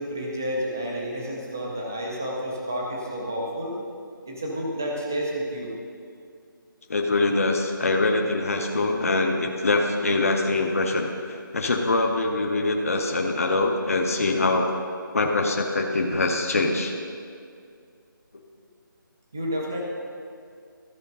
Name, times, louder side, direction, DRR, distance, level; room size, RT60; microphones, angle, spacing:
voice 1, 0.0-3.8 4.3-5.7 19.3-19.8, equal, 10° right, -2 dB, 0.4 m, -30 dB
voice 2, 6.9-14.7 15.1-16.9, left 2 dB, 40° left, 2 dB, 0.7 m, -24 dB
13.5 x 5.0 x 5.3 m, 2.3 s
figure-of-eight pair, 175°, 11 cm